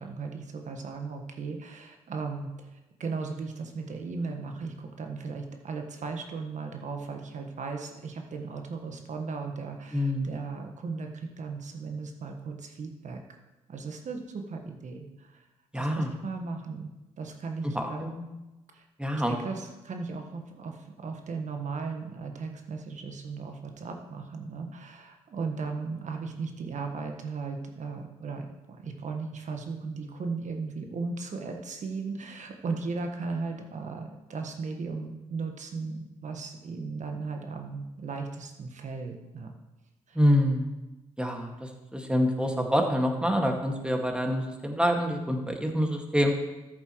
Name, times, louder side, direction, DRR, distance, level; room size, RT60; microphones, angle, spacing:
voice 1, 0.0-13.2 13.7-15.5 15.7-16.9 17.2-18.1 18.7-18.8 19.1-39.5 40.1-40.2, right 4 dB, 50° right, 4 dB, 1.4 m, -36 dB
voice 2, 9.9-10.4 15.7-16.1 17.7-18.2 19.0-19.4 40.2-40.7 41.2-46.3, equal, 5° right, 2 dB, 2.0 m, -26 dB
13.5 x 7.5 x 3.1 m, 1.1 s
hypercardioid pair, 45°, 16 cm